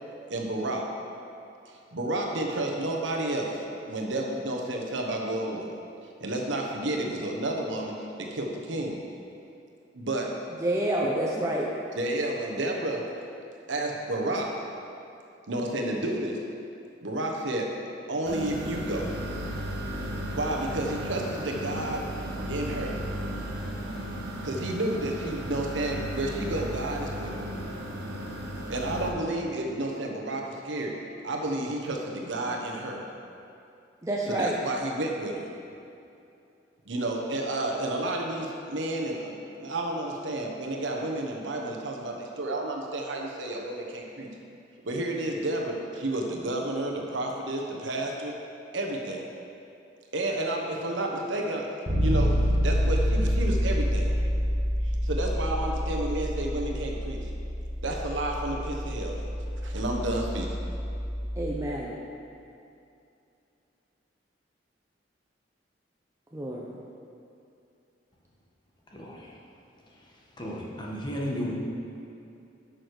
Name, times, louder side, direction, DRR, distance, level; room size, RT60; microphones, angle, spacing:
voice 1, 0.3-0.9 1.7-5.8 6.2-9.0 9.9-10.4 11.0-11.1 11.9-13.1 13.7-14.6 15.5-16.4 17.0-17.7 18.1-19.1 20.3-22.1 22.5-23.0 24.4-27.4 28.7-31.0 31.2-33.0 34.3-35.5 36.8-44.3 44.8-48.3 48.7-49.3 50.1-54.1 54.8-57.3 57.8-59.2 59.6-60.6, right 1 dB, 85° right, 0 dB, 1.2 m, -31 dB
voice 2, 10.6-11.7 34.0-34.6 61.4-61.9 66.3-66.8, right 1 dB, 15° right, -3 dB, 0.7 m, -28 dB
sound 1, 18.3-29.1, equal, 60° right, 1.7 m, -35 dB
Bass guitar, 51.9-61.7, equal, 30° right, 1.9 m, -28 dB
voice 3, 68.9-69.4 70.4-71.5, equal, 25° left, -3 dB, 1.4 m, -34 dB
11.5 x 6.3 x 4.8 m, 2.6 s
head